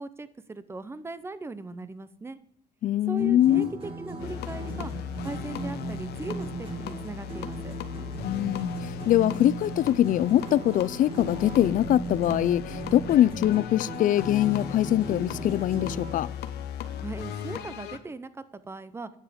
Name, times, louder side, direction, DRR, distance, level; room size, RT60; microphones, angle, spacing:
voice 1, 0.0-2.4 3.1-4.9 5.2-7.7 17.0-19.1, right 3 dB, 15° right, 0.7 m, -39 dB
voice 2, 2.8-3.7 8.2-8.7 9.1-16.3, left 12 dB, 50° left, 0.4 m, -23 dB
sound 1, 3.2-16.3, right 3 dB, 30° right, 3.5 m, -38 dB
sound 2, 4.2-18.0, left 9 dB, 75° left, 1.0 m, -37 dB
10.0 x 7.3 x 5.1 m
cardioid pair, 110°, 17 cm